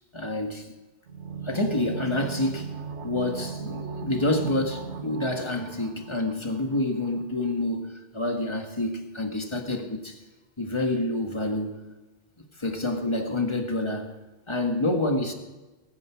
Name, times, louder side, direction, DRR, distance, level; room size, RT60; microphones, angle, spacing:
voice 1, 0.1-0.7 1.4-10.2 10.6-11.8 12.6-14.2 14.5-15.3, left 2 dB, 25° left, 1.7 m, -28 dB
sound 1, 1.1-6.8 7.0-7.1, right 6 dB, 85° right, 1.6 m, -37 dB
20.5 x 9.5 x 5.9 m
omnidirectional pair, 1.1 m